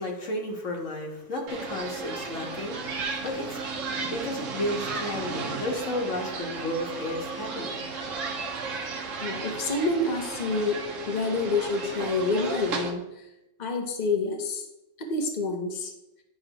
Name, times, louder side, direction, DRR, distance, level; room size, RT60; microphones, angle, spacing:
voice 1, 0.0-3.6 4.0-8.2, left 1 dB, 80° left, 0 dB, 1.7 m, -33 dB
sound 1, 1.5-12.9, right 4 dB, 90° right, 1.3 m, -34 dB
voice 2, 9.2-10.8 11.1-13.0 13.6-14.7 15.0-15.9, left 3 dB, 40° left, 2 dB, 0.9 m, -27 dB
10.5 x 5.4 x 3.0 m, 0.90 s
omnidirectional pair, 1.3 m